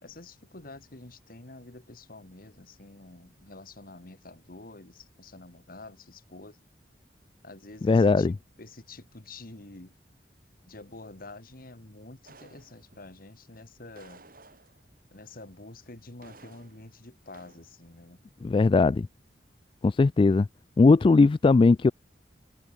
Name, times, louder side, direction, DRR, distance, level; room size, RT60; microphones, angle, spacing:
voice 1, 0.0-6.6 7.4-9.9 10.6-14.2 15.1-18.2, left 2 dB, 55° left, 2.5 m, -47 dB
voice 2, 7.8-8.3 18.4-19.1 19.8-20.5 20.8-21.9, left 3 dB, 30° left, 0.3 m, -19 dB
sound 1, 12.2-13.1 13.9-15.0 16.2-16.9 17.3-17.7, right 3 dB, 55° right, 7.3 m, -54 dB
head